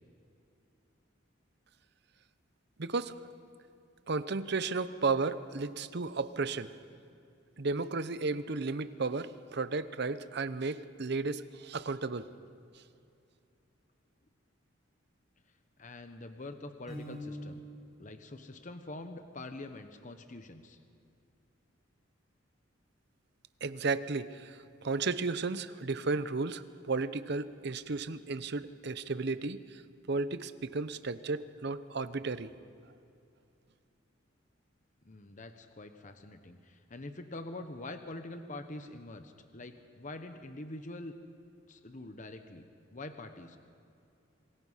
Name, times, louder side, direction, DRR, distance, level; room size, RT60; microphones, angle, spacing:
voice 1, 2.8-3.1 4.1-6.7 7.6-12.2 23.6-24.6 24.8-29.8 30.1-32.5, right 3 dB, 55° right, 13 dB, 0.8 m, -33 dB
voice 2, 15.8-17.7 18.0-20.8 35.0-41.1 41.7-42.6 42.9-43.6, left 2 dB, 40° left, 8 dB, 1.0 m, -45 dB
Piano, 16.9-17.9, equal, ahead, 6.9 m, -42 dB
27.0 x 20.5 x 5.7 m, 2.6 s
head